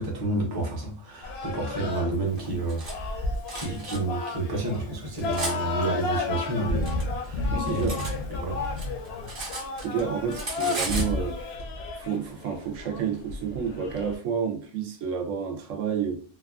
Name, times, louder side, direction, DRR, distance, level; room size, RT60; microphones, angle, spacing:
voice 1, 0.0-8.6, right 2 dB, 25° right, 0.6 m, -30 dB
sound 1, 1.2-14.2, left 3 dB, 65° left, 0.7 m, -32 dB
Cutlery silverware, 2.4-2.9 3.5-4.0 4.7-5.6 6.4-8.2 8.5-10.0 10.3-11.1, right 3 dB, 50° right, 0.9 m, -35 dB
voice 2, 7.5-8.0 9.8-11.4 12.0-16.2, right 7 dB, 80° right, 1.0 m, -30 dB
3.0 x 2.3 x 2.3 m
omnidirectional pair, 1.3 m